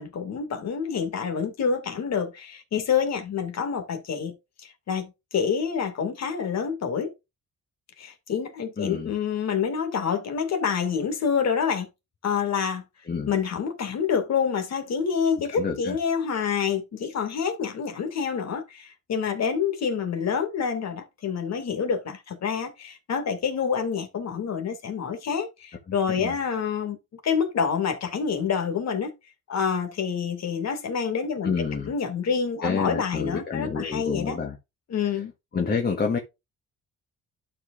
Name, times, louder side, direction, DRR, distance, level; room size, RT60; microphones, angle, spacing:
voice 1, 0.0-4.3 4.6-7.1 8.0-11.9 12.2-12.8 13.3-29.1 29.5-31.5 31.9-34.4 34.9-35.3, left 6 dB, 60° left, 2.2 m, -27 dB
voice 2, 8.8-9.1 13.1-13.3 15.5-16.0 26.2-26.3 31.4-31.9 32.6-34.5 35.5-36.2, left 5 dB, 30° left, 1.4 m, -28 dB
12.0 x 5.0 x 2.5 m
cardioid pair, 90°, 30 cm